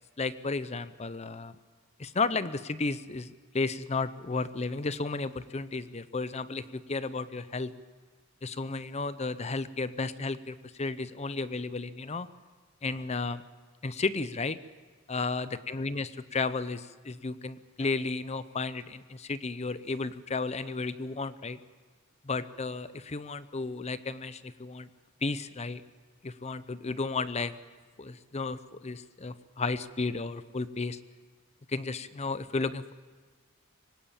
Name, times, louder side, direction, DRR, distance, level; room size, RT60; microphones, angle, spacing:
voice 1, 0.2-1.5 2.0-7.7 8.4-12.3 12.8-13.4 13.8-14.6 15.1-21.6 22.2-24.9 25.2-25.8 26.2-27.5 28.0-31.0 31.7-32.9, left 3 dB, 30° left, 14 dB, 0.6 m, -33 dB
24.5 x 18.5 x 8.7 m, 1.4 s
head